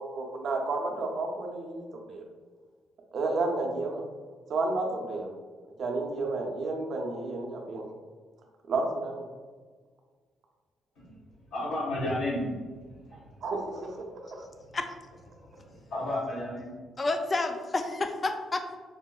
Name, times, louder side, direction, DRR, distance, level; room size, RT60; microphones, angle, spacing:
voice 1, 0.0-2.2 3.1-4.0 4.5-5.3 5.8-7.9 8.7-9.2 13.4-14.0 14.3-14.4, right 3 dB, 60° right, 1 dB, 0.5 m, -31 dB
voice 2, 10.9-13.4 14.3-14.6 15.3-16.7, left 1 dB, 90° left, -7 dB, 1.4 m, -34 dB
voice 3, 17.0-18.8, left 2 dB, 35° left, 6 dB, 0.3 m, -30 dB
4.6 x 2.0 x 2.3 m, 1.5 s
cardioid pair, 90°, 0 cm